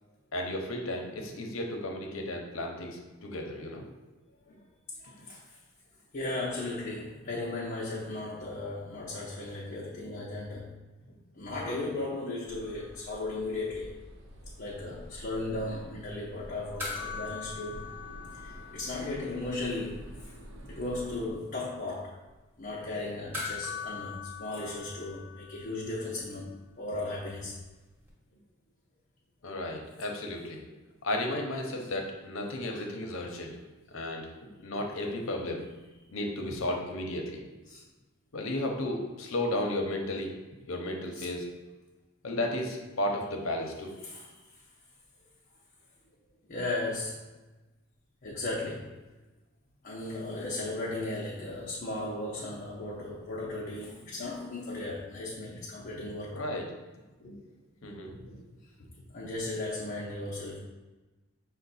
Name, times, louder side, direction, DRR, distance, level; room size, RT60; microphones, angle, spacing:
voice 1, 0.3-3.9 4.5-4.6 29.4-30.7 31.0-33.6 33.9-34.3 34.6-35.7 36.1-37.4 38.3-40.3 40.7-41.5 42.2-43.9 55.7-55.9 56.3-56.7 57.2-57.4 57.8-58.4, left 1 dB, 75° left, 1 dB, 0.7 m, -34 dB
voice 2, 5.0-5.5 6.1-10.7 11.3-13.9 14.6-17.9 18.4-20.1 20.7-22.2 22.6-26.5 26.8-27.6 37.7-37.8 41.1-41.3 44.0-44.3 46.5-47.2 48.2-48.9 49.8-56.5 59.1-60.6, left 2 dB, 40° left, -5 dB, 0.6 m, -36 dB
sound 1, 12.5-21.3, equal, 65° right, 0.5 m, -48 dB
sound 2, 16.8-19.5 19.7-19.8 23.3-25.9 28.1-28.2, left 5 dB, 10° right, 1.1 m, -40 dB
5.6 x 2.2 x 4.1 m, 1.2 s
head